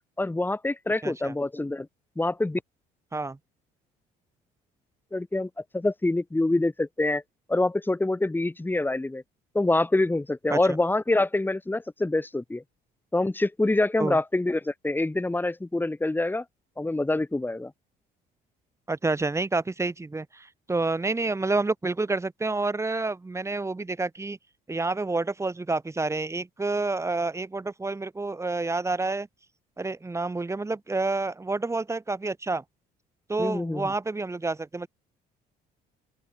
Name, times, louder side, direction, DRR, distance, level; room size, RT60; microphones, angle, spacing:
voice 1, 0.2-1.9 2.2-2.6 5.1-7.2 7.5-9.2 9.5-12.6 13.1-16.4 16.8-17.7 33.4-33.9, left 2 dB, 10° left, 7.2 m, -26 dB
voice 2, 1.0-1.3 3.1-3.4 10.5-10.6 14.0-14.2 18.9-24.4 24.7-29.3 29.8-32.6 33.3-34.9, right 3 dB, 15° right, 5.8 m, -29 dB
open air
cardioid pair, 110°, 17 cm